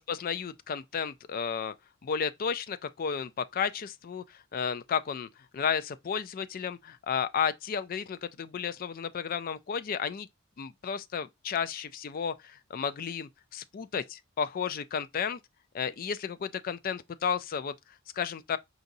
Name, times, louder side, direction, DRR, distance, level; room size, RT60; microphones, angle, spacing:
voice 1, 0.0-1.7 2.0-10.3 10.6-15.4 15.7-18.6, left 7 dB, 40° left, 0.3 m, -33 dB
4.9 x 4.0 x 2.6 m
head